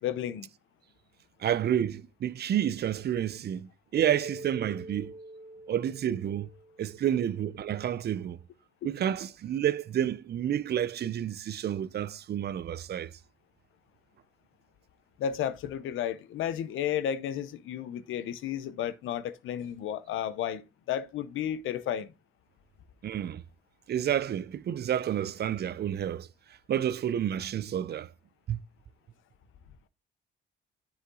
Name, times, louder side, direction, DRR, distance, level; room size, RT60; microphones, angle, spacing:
voice 1, 0.0-0.5 15.2-22.1, left 10 dB, 80° left, 0.9 m, -33 dB
voice 2, 1.4-5.1 5.7-6.5 6.8-8.4 8.8-13.1 23.0-23.4 23.9-26.3 26.7-28.1 28.5-28.6, right 10 dB, 55° right, 0.6 m, -30 dB
Keyboard (musical), 3.9-7.1, right 1 dB, 30° right, 2.1 m, -44 dB
9.8 x 5.1 x 3.8 m
cardioid pair, 90°, 20 cm